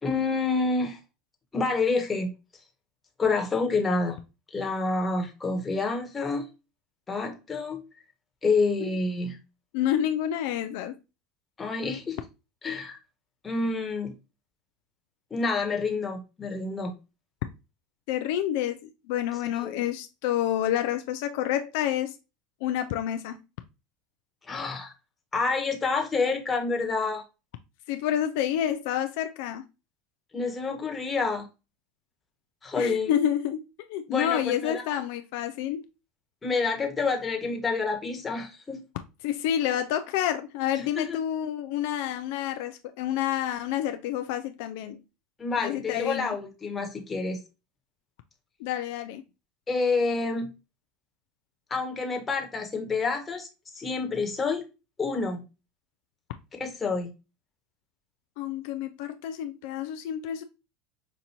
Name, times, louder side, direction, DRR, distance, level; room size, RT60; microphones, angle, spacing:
voice 1, 0.0-1.0 1.5-2.3 3.2-4.2 4.5-6.5 7.1-7.8 8.4-9.4 11.6-12.2 12.6-13.0 13.4-14.1 15.3-16.9 19.5-19.8 24.5-24.9 25.3-27.2 30.3-31.5 32.6-33.1 34.1-35.0 36.4-38.8 40.7-41.2 45.4-47.4 49.7-50.5 51.7-53.5 53.7-54.7 55.0-55.4 56.6-57.1, left 4 dB, 20° left, 1.2 m, -28 dB
voice 2, 9.7-11.0 18.1-22.2 22.6-23.4 27.9-29.6 32.8-33.6 33.9-35.8 39.2-45.0 45.6-46.3 48.6-49.2 58.4-60.4, left 11 dB, 70° left, 0.3 m, -29 dB
5.6 x 2.5 x 2.9 m
hypercardioid pair, 95°, 0 cm